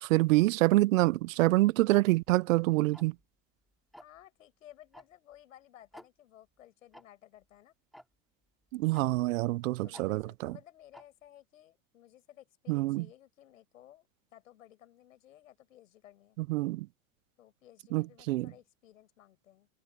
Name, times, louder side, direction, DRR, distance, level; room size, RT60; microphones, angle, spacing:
voice 1, 0.0-3.1 8.7-10.5 12.7-13.1 16.4-16.9 17.9-18.5, right 19 dB, 85° right, 0.6 m, -26 dB
Tick-tock, 1.9-2.0 2.9-3.2 3.9-4.2 4.9-5.0 5.3-5.4 5.9-6.1 6.9-7.0 7.9-8.0 8.9-9.0 9.9-10.1 10.9-11.0, equal, ahead, 2.7 m, -50 dB
voice 2, 4.0-7.8 9.8-14.1 14.3-16.4 17.4-19.7, left 12 dB, 90° left, 7.8 m, -56 dB
hypercardioid pair, 90°, 38 cm